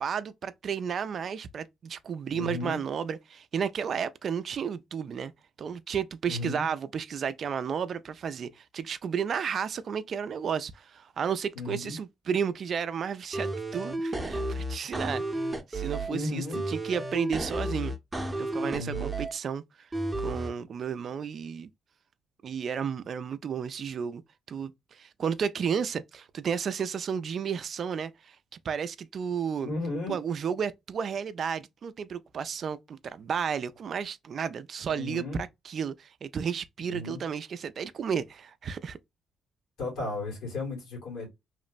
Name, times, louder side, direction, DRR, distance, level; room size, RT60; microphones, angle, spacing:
voice 1, 0.0-5.3 5.6-15.2 15.7-17.9 18.4-19.6 20.2-21.7 22.4-24.2 24.5-28.4 28.6-29.7 30.1-35.2 35.7-39.0, right 7 dB, 55° right, 0.3 m, -32 dB
voice 2, 2.3-2.8 6.2-6.6 11.6-12.0 16.1-16.6 18.7-19.1 29.6-30.2 35.0-35.4 36.8-37.2 39.8-41.3, left 2 dB, 85° left, 1.8 m, -34 dB
sound 1, 13.3-16.1 16.5-19.3 19.9-20.5, right 1 dB, 15° right, 0.7 m, -32 dB
3.0 x 2.1 x 2.4 m
cardioid pair, 90°, 0 cm